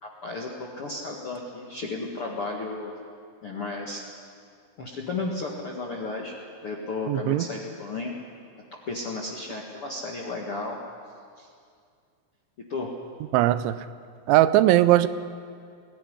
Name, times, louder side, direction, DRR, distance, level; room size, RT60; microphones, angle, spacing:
voice 1, 0.0-3.0 3.4-4.0 4.8-6.4 6.6-8.1 8.9-10.8 11.4-11.5 12.7-12.9, left 3 dB, 60° left, -2 dB, 1.5 m, -33 dB
voice 2, 7.1-7.5 13.3-13.9 14.3-15.1, right 14 dB, 85° right, 14 dB, 3.1 m, -19 dB
21.0 x 16.5 x 9.9 m, 2.2 s
omnidirectional pair, 5.3 m